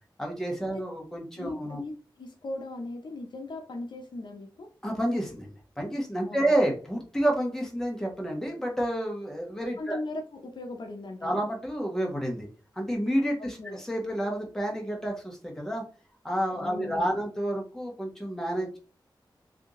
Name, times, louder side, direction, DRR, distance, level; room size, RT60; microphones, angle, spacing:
voice 1, 0.2-1.8 4.8-10.0 11.2-12.5 12.8-15.8 16.2-18.8, right 1 dB, 5° left, 0 dB, 1.2 m, -29 dB
voice 2, 1.4-4.7 6.2-6.4 9.8-11.4 13.4-13.8 16.6-17.2, left 2 dB, 65° left, 3 dB, 0.7 m, -38 dB
3.5 x 2.7 x 3.6 m, 0.37 s
wide cardioid pair, 105°, 8 cm